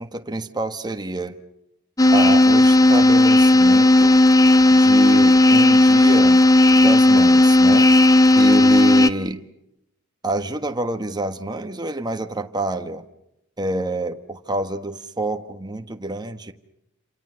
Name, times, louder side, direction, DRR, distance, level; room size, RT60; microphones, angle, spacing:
voice 1, 0.0-1.4 2.1-4.2 4.7-6.4 6.8-7.9 8.3-9.4 10.2-13.0 13.6-16.5, right 2 dB, 20° right, 6 dB, 1.4 m, -27 dB
sound 1, 2.0-9.1, left 2 dB, 15° left, 0.9 m, -13 dB
28.5 x 27.5 x 6.4 m, 0.82 s
head